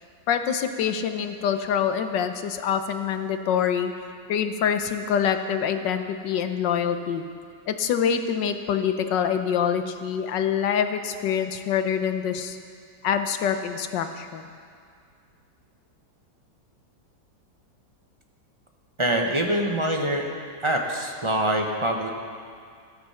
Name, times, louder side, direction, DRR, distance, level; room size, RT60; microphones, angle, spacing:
voice 1, 0.3-3.9 4.3-7.2 7.7-12.6 13.0-14.4, left 8 dB, 80° left, 8 dB, 1.5 m, -25 dB
voice 2, 19.0-20.3 20.6-22.1, right 1 dB, 25° right, 1 dB, 0.8 m, -24 dB
14.0 x 13.0 x 5.7 m, 2.2 s
omnidirectional pair, 1.9 m